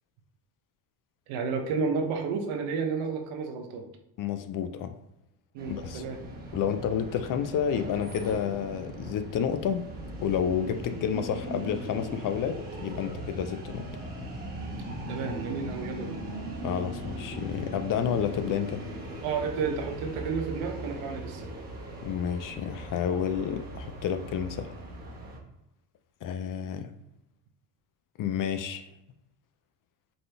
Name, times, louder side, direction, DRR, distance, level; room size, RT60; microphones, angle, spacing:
voice 1, 1.3-3.9 5.5-6.2 15.1-16.2 19.2-21.5, right 5 dB, 85° right, 4 dB, 0.9 m, -31 dB
voice 2, 4.2-4.9 5.7-6.0 6.5-9.9 10.2-13.8 16.6-18.8 22.0-24.7 26.2-26.9 28.2-28.9, left 8 dB, 45° left, 8 dB, 0.5 m, -30 dB
sound 1, 5.6-25.4, right 1 dB, 20° right, 1.3 m, -39 dB
4.0 x 3.9 x 3.3 m, 0.87 s
cardioid pair, 125°, 46 cm